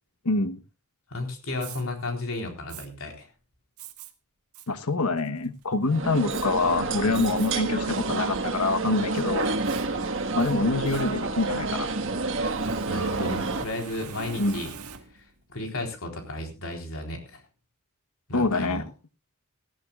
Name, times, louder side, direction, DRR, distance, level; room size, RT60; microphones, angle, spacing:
voice 1, 0.2-0.6 4.7-9.6 10.3-11.9 14.4-14.6 18.3-18.8, left 3 dB, 90° left, 11 dB, 1.2 m, -26 dB
voice 2, 1.1-3.3 12.9-14.7 15.1-17.4 18.3-18.8, left 2 dB, 65° left, 3 dB, 4.0 m, -34 dB
Fire, 1.6-1.8 2.7-2.9 3.8-4.1 4.5-4.7 5.2-5.6 6.3-6.5 7.1-7.5 8.0-8.1 9.2-11.6 12.5-15.4, right 5 dB, 85° right, 1.5 m, -42 dB
sound 1, 5.9-13.7, right 3 dB, 60° right, 1.6 m, -29 dB
18.5 x 15.0 x 2.4 m, 0.28 s
head